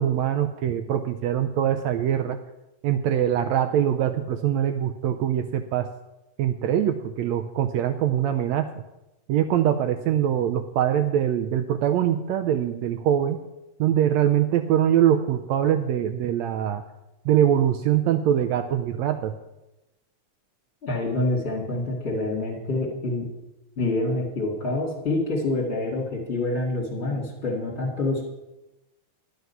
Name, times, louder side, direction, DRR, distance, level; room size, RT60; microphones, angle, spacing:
voice 1, 0.0-2.4 2.8-5.9 6.4-8.7 9.3-13.4 13.8-16.8 17.2-19.3, right 10 dB, 85° right, 8 dB, 1.6 m, -23 dB
voice 2, 20.8-23.3 23.8-28.2, left 2 dB, 25° left, -3 dB, 2.0 m, -27 dB
11.5 x 9.6 x 5.6 m, 0.97 s
omnidirectional pair, 3.7 m